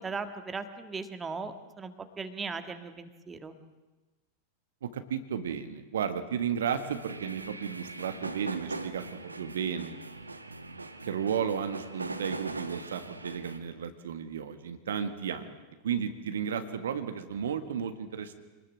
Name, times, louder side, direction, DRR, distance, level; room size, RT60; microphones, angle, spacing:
voice 1, 0.0-3.5, right 4 dB, 15° right, 8 dB, 1.7 m, -38 dB
voice 2, 4.8-10.0 11.0-15.5 15.8-18.3, right 7 dB, 65° right, 9 dB, 1.6 m, -33 dB
sound 1, 6.7-13.6, right 2 dB, 80° right, 1.3 m, -41 dB
26.5 x 20.0 x 7.7 m, 1.2 s
figure-of-eight pair, 90°, 0 cm